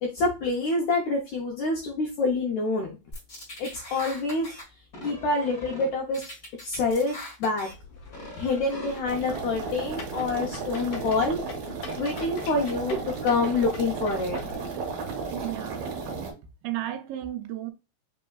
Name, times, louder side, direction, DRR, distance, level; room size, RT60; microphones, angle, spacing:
voice 1, 0.0-3.0 3.6-4.5 5.0-6.2 6.6-7.7 8.4-11.4 12.0-14.4, left 3 dB, 80° left, 1.7 m, -27 dB
sound 1, 3.1-4.6 4.9-5.9 6.1-7.7 8.1-9.0, left 1 dB, 35° left, 1.3 m, -41 dB
sound 2, 7.7-14.5, left 4 dB, 60° left, 2.1 m, -43 dB
sound 3, 9.1-16.3, right 4 dB, 65° right, 1.8 m, -34 dB
voice 2, 15.3-15.9 16.6-17.7, right 13 dB, 85° right, 2.4 m, -33 dB
5.4 x 3.3 x 2.3 m
omnidirectional pair, 4.2 m